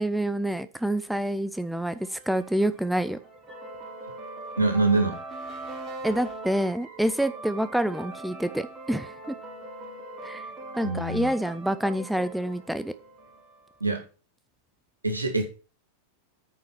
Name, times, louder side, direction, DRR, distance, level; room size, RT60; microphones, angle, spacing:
voice 1, 0.0-3.2 6.0-9.3 10.2-10.5 10.8-12.9, right 1 dB, ahead, 13 dB, 0.5 m, -27 dB
sound 1, 1.9-13.7, right 2 dB, 25° right, 4.1 m, -41 dB
voice 2, 4.6-5.2 10.8-11.3 13.8-14.0 15.0-15.4, right 3 dB, 80° right, 5 dB, 2.1 m, -24 dB
8.9 x 5.3 x 6.0 m, 0.34 s
figure-of-eight pair, 90°, 0 cm